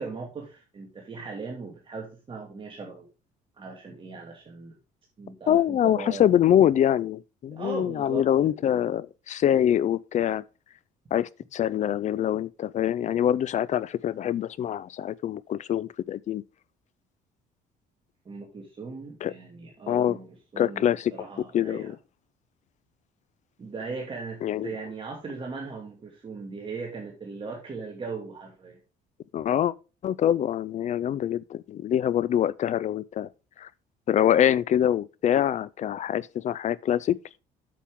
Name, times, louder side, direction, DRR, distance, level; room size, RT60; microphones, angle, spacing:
voice 1, 0.0-3.1 3.6-4.8 5.2-6.3 7.5-8.2 8.7-8.9 18.3-20.3 20.5-21.9 23.6-28.8, right 4 dB, 30° right, 2.4 m, -38 dB
voice 2, 5.5-10.4 11.1-16.4 19.2-19.3 19.9-20.2 20.6-21.1 21.5-22.0 24.4-24.7 29.3-29.7 30.0-33.3 33.6-33.7 34.1-37.2, left 10 dB, 45° left, 0.4 m, -24 dB
8.5 x 7.4 x 3.7 m
cardioid pair, 110°, 17 cm